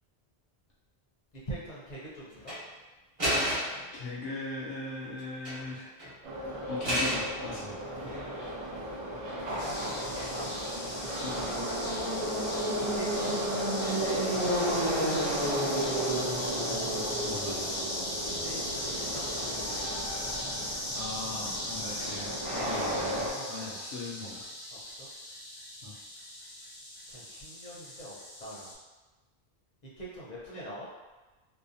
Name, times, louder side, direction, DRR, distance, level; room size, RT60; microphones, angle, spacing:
voice 1, 1.5-2.5 9.6-10.5 12.8-14.8 15.1-15.3 17.1-17.3 18.2-20.1 21.8-22.1 23.3-23.8 24.2-24.3 24.7-25.1 27.1-28.7 30.0-30.9, right 1 dB, 45° left, -7 dB, 0.7 m, -44 dB
sound 1, 2.3-2.6 3.2-3.9 5.2-5.7 6.0-6.1 6.8-7.3 7.9-8.5 10.2-10.6, equal, 30° right, 1.1 m, -31 dB
voice 2, 3.9-5.9 6.7-7.7 11.1-11.4 17.3-17.7 20.9-24.4 25.8-25.9, left 2 dB, 80° left, -6 dB, 0.8 m, -39 dB
Subway metro underground, 6.2-23.3, right 1 dB, 50° right, 0.4 m, -33 dB
sound 2, 9.6-28.7, left 1 dB, 25° left, 0.3 m, -38 dB
2.6 x 2.1 x 2.5 m, 1.2 s
omnidirectional pair, 1.1 m